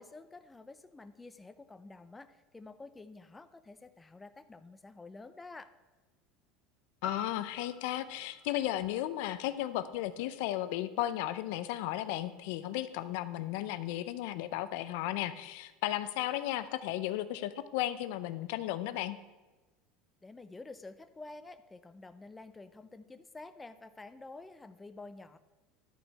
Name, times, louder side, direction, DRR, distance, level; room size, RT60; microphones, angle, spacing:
voice 1, 0.0-5.7 20.2-25.4, left 3 dB, 10° left, 10 dB, 0.4 m, -49 dB
voice 2, 7.0-19.2, left 14 dB, 75° left, 13 dB, 0.5 m, -35 dB
sound 1, 7.0-11.1 11.6-11.7, left 6 dB, 40° left, 0.9 m, -48 dB
11.5 x 5.1 x 4.7 m, 1.2 s
supercardioid pair, 140°, 0 cm